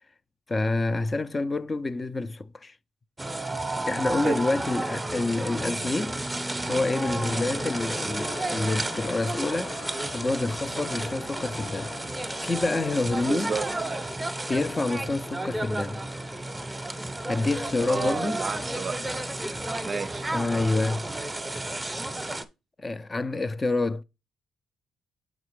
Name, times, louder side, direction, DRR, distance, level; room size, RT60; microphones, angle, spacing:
voice 1, 0.5-2.7 3.9-6.2 6.7-9.8 10.1-11.9 12.4-13.5 14.5-16.0 17.3-18.4 20.3-21.1 22.8-24.0, left 2 dB, 25° left, 0.5 m, -27 dB
sound 1, 3.2-22.4, right 2 dB, 15° right, 0.9 m, -32 dB
sound 2, 7.3-19.7, left 6 dB, 90° left, 0.9 m, -45 dB
voice 2, 13.3-13.7 17.8-19.0 19.8-20.3, right 5 dB, 40° right, 0.4 m, -31 dB
7.2 x 5.0 x 3.2 m
cardioid pair, 90°, 0 cm